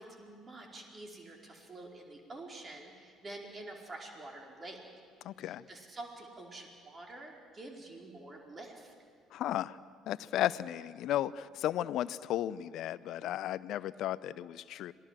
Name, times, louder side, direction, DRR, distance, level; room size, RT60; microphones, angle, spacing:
voice 1, 0.0-4.8 5.4-8.9, right 2 dB, 30° right, 1 dB, 4.7 m, -47 dB
voice 2, 5.2-5.6 9.3-9.8 10.1-14.9, left 12 dB, 60° left, 18 dB, 0.5 m, -34 dB
26.5 x 18.5 x 7.6 m, 2.1 s
figure-of-eight pair, 55°, 0 cm